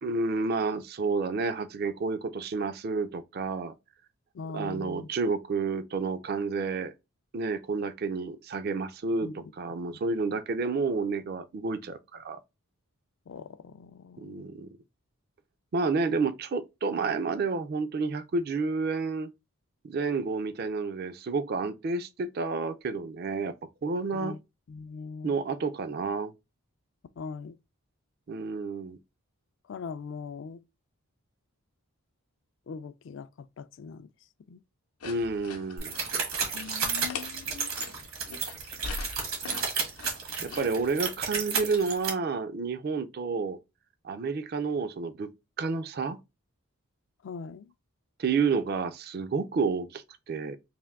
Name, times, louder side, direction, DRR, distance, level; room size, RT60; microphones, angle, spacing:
voice 1, 0.0-3.7 4.5-6.9 7.3-12.4 14.2-14.7 15.7-19.3 19.8-23.5 23.8-24.4 25.2-26.3 28.3-29.0 35.0-35.9 40.4-43.6 44.0-45.3 45.6-46.2 48.2-50.6, right 4 dB, 45° right, 0.4 m, -30 dB
voice 2, 4.3-5.1 9.2-9.5 13.3-14.5 24.1-24.4 24.7-25.3 27.2-27.6 29.7-30.6 32.7-34.1 34.5-34.6 36.5-37.7 47.2-47.7, left 5 dB, 60° left, 0.3 m, -41 dB
sound 1, 35.0-41.1, left 4 dB, 85° left, 0.7 m, -43 dB
sound 2, 35.8-42.1, right 5 dB, 75° right, 1.2 m, -32 dB
3.4 x 2.5 x 3.5 m
head